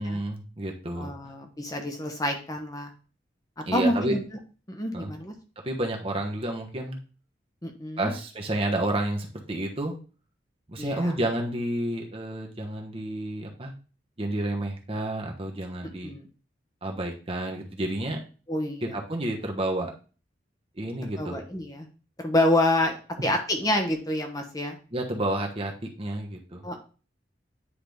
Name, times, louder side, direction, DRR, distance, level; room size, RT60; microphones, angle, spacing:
voice 1, 0.0-1.1 3.6-4.1 4.9-5.1 5.6-7.0 8.0-9.9 10.7-13.7 14.2-16.1 16.8-18.2 18.8-19.9 20.8-21.4 24.9-26.6, right 1 dB, 30° right, 1 dB, 1.2 m, -30 dB
voice 2, 1.0-2.9 3.6-4.2 4.7-5.3 7.6-8.1 10.8-11.2 16.0-16.3 18.5-18.9 21.2-21.9 22.2-24.8 26.6-26.8, left 1 dB, 20° left, 3 dB, 1.1 m, -27 dB
9.7 x 3.9 x 3.5 m, 0.36 s
head